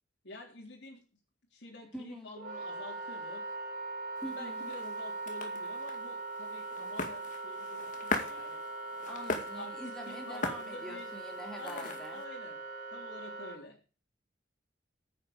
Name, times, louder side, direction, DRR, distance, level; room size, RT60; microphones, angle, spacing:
voice 1, 0.2-1.0 1.5-3.5 4.3-8.6 9.6-11.1 11.6-12.6 12.9-13.8, left 2 dB, 65° left, -4 dB, 3.7 m, -49 dB
voice 2, 1.9-2.3 4.2-4.7 9.1-12.2, right 1 dB, 5° left, 1 dB, 2.7 m, -45 dB
Wind instrument woodwind instrument, 2.3-13.6, right 3 dB, 45° right, 3.7 m, -41 dB
sound 1, 4.2-12.3, left 3 dB, 45° left, 2.2 m, -41 dB
10.0 x 8.8 x 8.0 m, 0.36 s
head